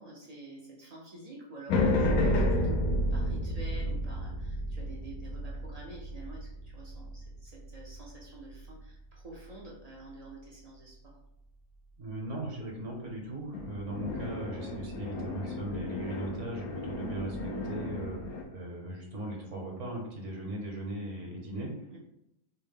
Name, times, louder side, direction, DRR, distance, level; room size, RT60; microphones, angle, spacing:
voice 1, 0.0-11.2 21.9-22.0, right 2 dB, 45° right, -3 dB, 0.5 m, -48 dB
sound 1, 1.7-8.2 13.5-18.4, left 1 dB, 85° left, 1.1 m, -32 dB
voice 2, 12.0-21.8, right 1 dB, 60° right, -1 dB, 1.2 m, -38 dB
4.5 x 2.1 x 3.5 m, 0.84 s
omnidirectional pair, 1.5 m